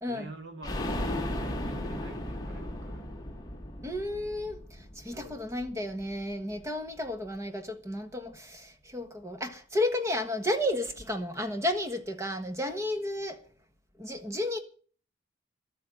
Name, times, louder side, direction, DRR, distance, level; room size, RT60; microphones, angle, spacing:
voice 1, 0.1-3.1 5.1-5.4, right 2 dB, 60° right, 2.7 m, -47 dB
sound 1, 0.6-6.3 6.6-6.7 7.0-7.1, left 1 dB, 20° left, 1.6 m, -36 dB
voice 2, 3.8-13.4 14.0-14.6, left 1 dB, 15° right, 1.4 m, -32 dB
12.5 x 8.7 x 9.0 m
head